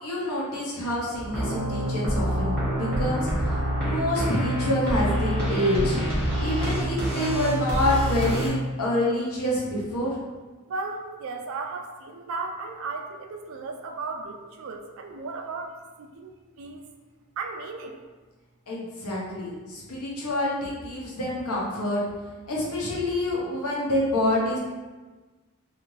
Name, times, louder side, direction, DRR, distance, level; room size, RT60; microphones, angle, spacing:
voice 1, 0.0-6.0 6.4-10.2 18.7-22.0 22.4-24.6, left 1 dB, 80° left, -4 dB, 0.8 m, -27 dB
sound 1, 1.2-8.5, right 1 dB, 5° left, 0.7 m, -26 dB
voice 2, 10.7-16.9 17.4-18.0, right 3 dB, 60° right, 4 dB, 0.4 m, -35 dB
2.6 x 2.5 x 3.0 m, 1.3 s
head